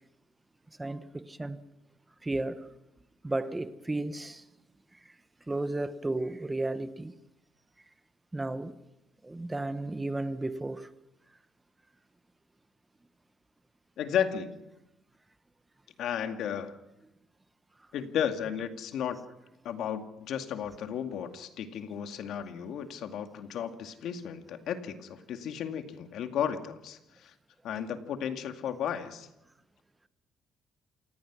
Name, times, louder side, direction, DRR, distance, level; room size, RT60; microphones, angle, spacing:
voice 1, 0.8-1.6 2.2-2.7 3.2-4.4 4.9-5.1 5.5-7.1 8.3-8.8 9.2-10.9, right 2 dB, 15° right, 1.1 m, -33 dB
voice 2, 14.0-14.5 16.0-16.7 17.9-19.2 19.6-27.3 27.6-29.3, left 8 dB, 70° left, 2.2 m, -34 dB
28.0 x 18.5 x 6.2 m
cardioid pair, 120°, 0 cm